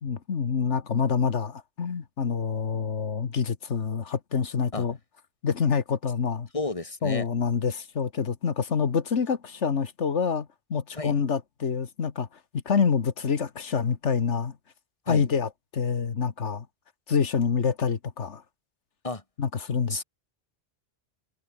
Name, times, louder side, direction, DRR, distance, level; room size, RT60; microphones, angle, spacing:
voice 1, 0.0-5.0 5.4-6.5 7.0-12.3 12.7-14.5 15.1-16.7 17.1-18.4 19.4-20.0, left 6 dB, 90° left, 1.8 m, -27 dB
voice 2, 6.5-7.3 11.0-11.1 15.1-15.3 19.0-19.2 19.9-20.0, left 2 dB, 30° left, 2.5 m, -31 dB
omnidirectional pair, 1.2 m